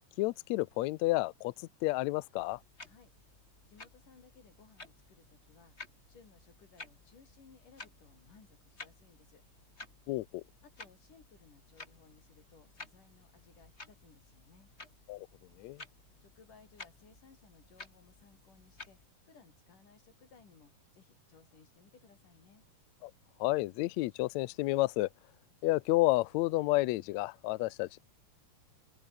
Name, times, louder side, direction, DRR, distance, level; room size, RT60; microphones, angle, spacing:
voice 1, 0.2-2.6 10.1-10.4 15.1-15.3 15.6-15.8 23.0-23.1 23.4-25.1 25.6-28.0, left 19 dB, 85° left, 1.6 m, -30 dB
sound 1, 2.4-19.1, left 3 dB, 20° left, 3.3 m, -54 dB
voice 2, 2.8-3.1 3.7-5.8 6.1-9.4 10.6-14.7 16.2-19.0 19.3-22.6, left 5 dB, 70° left, 6.5 m, -61 dB
omnidirectional pair, 3.9 m